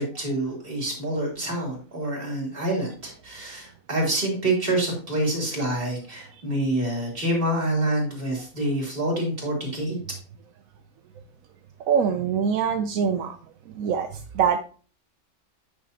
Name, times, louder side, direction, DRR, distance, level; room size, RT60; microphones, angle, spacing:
voice 1, 0.0-10.0, right 1 dB, 45° right, -1 dB, 3.1 m, -27 dB
voice 2, 11.9-13.4 13.8-14.1 14.3-14.6, right 7 dB, 85° right, 7 dB, 1.1 m, -23 dB
8.8 x 6.8 x 2.8 m, 0.38 s
omnidirectional pair, 1.4 m